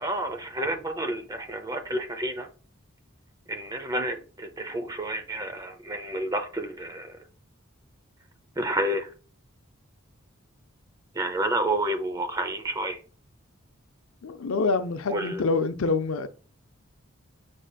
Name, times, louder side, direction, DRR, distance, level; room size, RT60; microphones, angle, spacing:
voice 1, 0.0-2.5 3.5-7.1 8.6-9.1 11.2-13.0 15.1-15.4, right 1 dB, 15° right, 0.5 m, -30 dB
voice 2, 14.2-16.3, left 3 dB, 85° left, 0.5 m, -26 dB
4.9 x 4.3 x 2.2 m
head